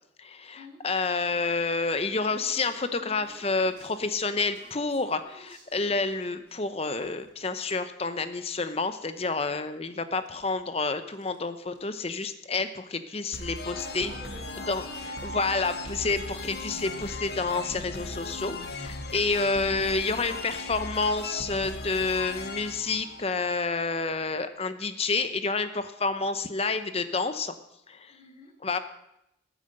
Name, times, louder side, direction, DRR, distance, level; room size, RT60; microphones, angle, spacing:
voice 1, 0.2-14.1 14.7-14.8 15.2-27.5 27.9-28.1 28.6-28.8, left 3 dB, 30° left, 11 dB, 0.8 m, -29 dB
sound 1, 1.7-6.6 7.0-8.8 9.1-9.8 10.1-11.4 11.7-11.8 12.1-12.3 12.6-12.7 13.5-13.6 13.9-14.2 14.7-15.0, right 2 dB, 50° right, 4.6 m, -54 dB
sound 2, 13.3-23.9, left 2 dB, 55° left, 1.3 m, -38 dB
voice 2, 13.7-15.3 28.1-28.5, left 1 dB, 10° right, -8 dB, 4.3 m, -47 dB
13.0 x 9.3 x 7.8 m, 0.83 s
head